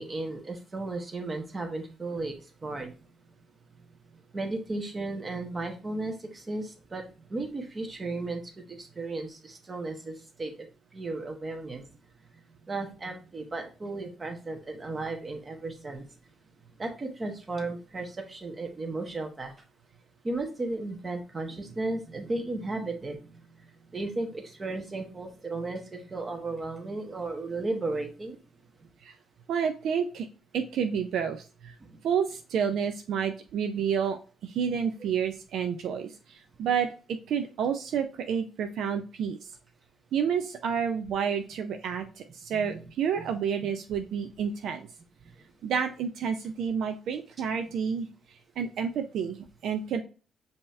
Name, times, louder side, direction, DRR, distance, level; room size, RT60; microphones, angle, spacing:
voice 1, 0.0-2.9 4.3-8.4 8.7-10.5 10.9-11.9 12.6-16.0 16.8-19.5 20.2-23.3 23.9-28.4 31.8-32.0 42.5-42.9 43.2-43.4, right 2 dB, 30° right, 4 dB, 1.2 m, -35 dB
voice 2, 29.5-30.3 30.5-31.8 32.0-39.4 40.1-44.9 45.6-49.4 49.6-50.0, right 7 dB, 75° right, 6 dB, 0.4 m, -30 dB
5.4 x 2.8 x 3.2 m, 0.35 s
cardioid pair, 90°, 0 cm